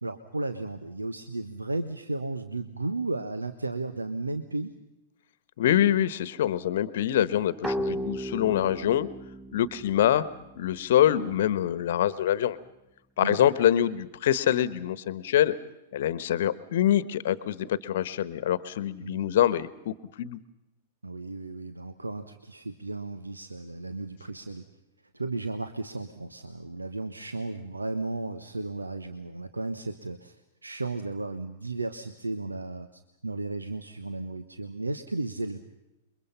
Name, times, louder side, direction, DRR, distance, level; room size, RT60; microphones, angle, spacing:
voice 1, 0.0-4.8 13.2-13.5 19.0-19.4 21.0-24.7 25.1-30.4 30.6-35.6, right 2 dB, 85° right, 9 dB, 1.3 m, -34 dB
voice 2, 5.6-9.1 9.5-10.2 10.6-12.6 13.2-15.5 15.9-20.4, left 11 dB, 55° left, 17 dB, 1.1 m, -25 dB
sound 1, 7.6-11.1, equal, 10° right, 1.1 m, -35 dB
28.5 x 23.5 x 5.7 m, 0.93 s
figure-of-eight pair, 100°, 0 cm